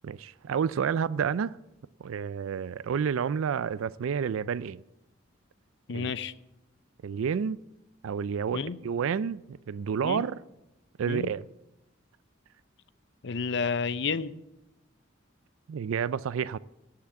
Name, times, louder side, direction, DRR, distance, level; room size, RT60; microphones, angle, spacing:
voice 1, 0.0-1.6 2.0-4.8 5.9-6.1 7.0-7.6 8.0-10.4 11.0-11.4 15.7-16.6, right 7 dB, 80° right, 0.4 m, -30 dB
voice 2, 5.9-6.3 8.5-8.8 10.0-10.2 11.1-11.3 13.2-14.3, left 5 dB, 55° left, 0.6 m, -30 dB
17.0 x 5.9 x 7.1 m
head